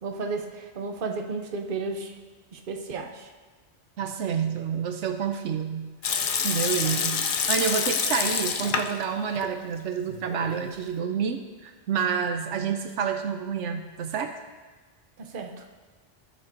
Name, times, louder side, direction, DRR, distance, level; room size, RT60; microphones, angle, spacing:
voice 1, 0.0-2.2 2.5-3.3 7.0-7.1 15.2-15.6, right 4 dB, 50° right, 3 dB, 1.0 m, -33 dB
voice 2, 4.0-5.9 6.4-14.3, right 7 dB, 80° right, 7 dB, 1.0 m, -29 dB
Water tap faucet / Sink (filling or washing) / Liquid, 6.0-9.0 9.4-9.5 10.1-10.7, left 6 dB, 55° left, 0.7 m, -27 dB
18.0 x 6.7 x 2.6 m, 1.4 s
omnidirectional pair, 1.2 m